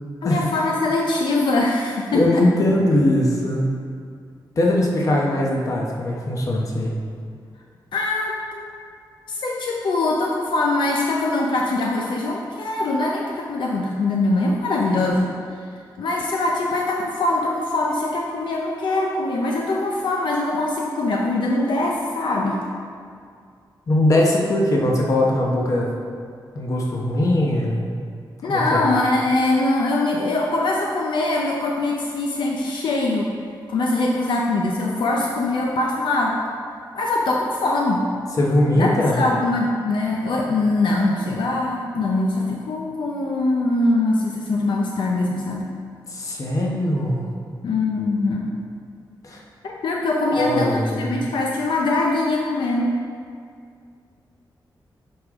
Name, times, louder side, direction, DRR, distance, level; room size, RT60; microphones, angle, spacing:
voice 1, 0.2-2.4 7.9-8.7 9.3-15.3 16.0-22.6 28.4-33.3 33.7-36.4 36.9-38.1 38.8-45.7 47.6-48.5 49.6-53.0, left 2 dB, 75° left, -1 dB, 0.7 m, -22 dB
voice 2, 2.1-3.6 4.6-6.9 23.9-25.9 26.5-27.9 28.5-28.8 38.4-39.2 46.1-47.3 49.2-49.4 50.3-51.2, left 1 dB, 45° left, -2 dB, 1.0 m, -20 dB
8.7 x 5.1 x 3.7 m, 2.2 s
wide cardioid pair, 175°, 8 cm